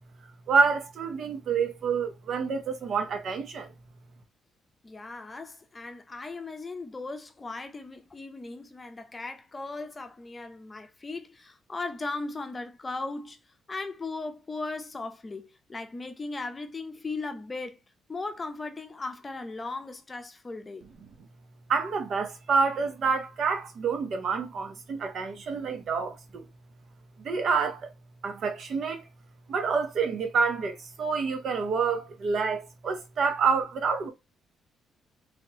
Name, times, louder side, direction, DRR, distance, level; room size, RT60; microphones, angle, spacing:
voice 1, 0.5-3.6 21.7-26.1 27.3-27.8 28.2-29.0 29.5-30.7 31.0-32.6 32.8-34.1, right 5 dB, 60° right, 0.8 m, -27 dB
voice 2, 4.8-13.4 13.7-17.8 18.1-20.9, left 3 dB, 25° left, 0.6 m, -37 dB
3.4 x 2.9 x 2.9 m
cardioid pair, 90°, 0 cm